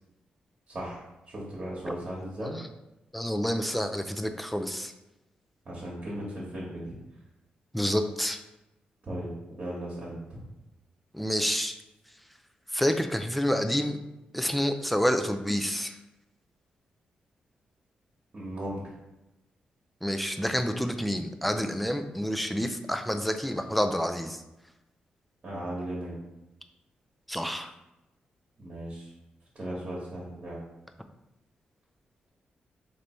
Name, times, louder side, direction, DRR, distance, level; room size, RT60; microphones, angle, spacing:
voice 1, 0.7-2.5 5.6-6.9 9.0-9.3 9.6-10.4 18.3-18.8 25.4-26.1 28.6-29.1 29.5-30.6, right 1 dB, 45° right, -6 dB, 1.3 m, -37 dB
voice 2, 3.1-4.9 7.7-8.4 11.1-11.8 12.7-14.0 14.3-16.0 20.0-24.4 27.3-27.7, equal, ahead, 7 dB, 0.3 m, -28 dB
3.3 x 2.6 x 4.3 m, 0.96 s
cardioid pair, 85°, 3 cm